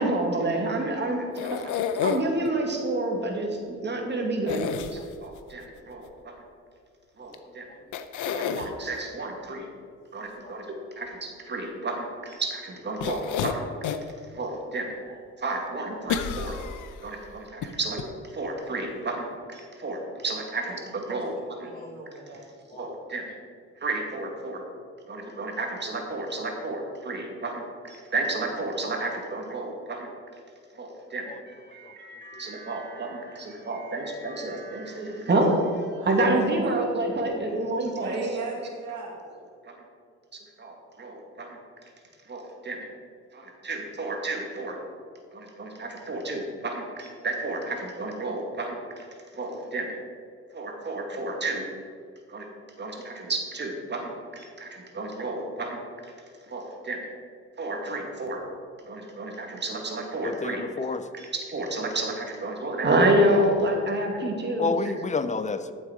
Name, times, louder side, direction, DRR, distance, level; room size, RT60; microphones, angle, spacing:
voice 1, 0.0-6.3 7.2-7.7 8.3-9.7 10.1-13.6 14.3-16.6 17.0-21.3 21.6-21.7 22.7-23.3 23.8-24.6 25.1-30.1 30.8-38.2 39.6-39.7 40.6-41.6 42.3-42.8 43.3-44.8 45.3-49.0 49.3-49.9 50.5-51.7 52.3-52.5 52.8-55.8 56.5-57.1 57.6-58.4 58.8-60.9 61.1-64.8, right 2 dB, 35° right, 1 dB, 2.2 m, -30 dB
sound 1, 1.3-2.5 4.5-5.4 7.3-7.4 7.9-8.7 13.0-14.1 14.6-14.7 16.1-17.1 17.6-17.7 18.0-18.1, left 8 dB, 80° left, 0.8 m, -30 dB
voice 2, 21.6-22.4 36.0-36.7 38.0-39.1, right 4 dB, 80° right, -8 dB, 2.4 m, -37 dB
voice 3, 60.2-61.0 64.6-65.7, left 4 dB, 25° left, 12 dB, 0.7 m, -29 dB
12.5 x 7.5 x 5.1 m, 2.2 s
cardioid pair, 90°, 30 cm